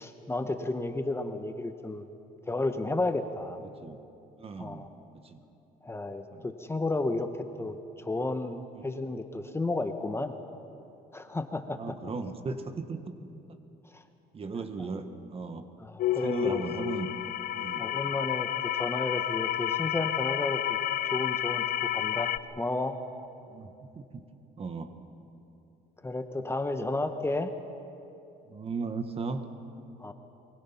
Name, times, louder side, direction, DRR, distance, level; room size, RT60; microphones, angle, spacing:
voice 1, 0.0-2.1 2.5-3.6 4.6-4.9 5.8-7.3 7.6-10.3 11.1-11.8 13.9-14.0 15.8-16.6 17.8-18.5 18.7-20.8 21.1-23.0 26.0-27.5 30.0-30.1, left 2 dB, 15° left, 7 dB, 1.1 m, -32 dB
voice 2, 4.4-4.9 5.2-5.4 6.3-6.5 8.7-8.8 11.7-13.1 14.3-15.1 15.3-15.6 16.2-17.8 23.5-24.2 24.6-24.9 28.5-29.4, right 4 dB, 35° right, 8 dB, 1.5 m, -36 dB
sound 1, 16.0-22.4, left 13 dB, 55° left, 0.6 m, -30 dB
24.0 x 23.0 x 5.8 m, 2.7 s
cardioid pair, 110°, 17 cm